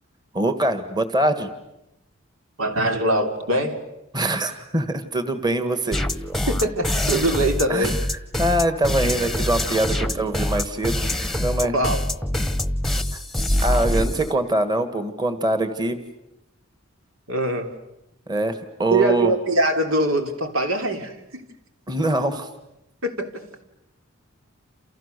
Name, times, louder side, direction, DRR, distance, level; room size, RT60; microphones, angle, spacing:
voice 1, 0.3-1.5 4.1-6.0 7.7-7.9 8.4-11.7 13.1-13.2 13.6-16.0 18.3-19.3 21.9-22.5, right 1 dB, 20° right, 10 dB, 1.7 m, -23 dB
voice 2, 2.6-3.8 6.5-7.9 11.7-12.0 17.3-17.7 18.9-21.4 23.0-23.4, right 1 dB, 90° right, 5 dB, 3.2 m, -23 dB
sound 1, 5.9-14.3, left 1 dB, ahead, 1.1 m, -24 dB
29.0 x 29.0 x 6.8 m, 0.86 s
head